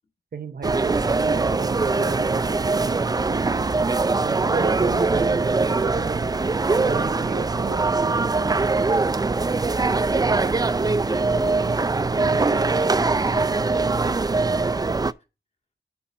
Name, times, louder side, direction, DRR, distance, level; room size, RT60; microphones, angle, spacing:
voice 1, 0.3-3.8 4.2-8.7 10.3-10.6 11.9-12.4, right 5 dB, 55° right, 0.7 m, -35 dB
sound 1, 0.6-15.1, right 3 dB, 20° right, 0.3 m, -22 dB
voice 2, 11.1-15.1, left 2 dB, 35° left, 2.0 m, -41 dB
7.0 x 4.4 x 5.3 m
wide cardioid pair, 65°, 19 cm